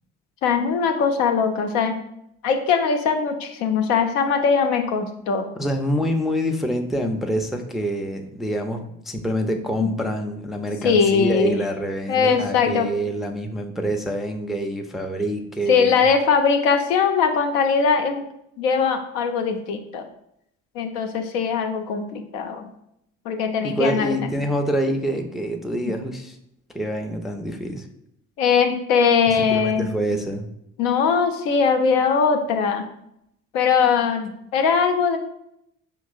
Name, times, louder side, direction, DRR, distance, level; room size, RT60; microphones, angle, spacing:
voice 1, 0.4-2.0 2.4-5.5 9.8-9.9 10.8-11.6 12.1-12.9 15.7-18.3 18.6-20.0 20.8-22.7 23.3-24.1 28.4-29.9 30.8-32.8 33.5-35.2, left 6 dB, 70° left, 5 dB, 0.6 m, -20 dB
voice 2, 5.6-16.0 23.6-26.4 26.7-27.9 29.3-30.5, equal, ahead, 3 dB, 0.4 m, -26 dB
5.1 x 2.9 x 2.4 m, 0.77 s
figure-of-eight pair, 40°, 40 cm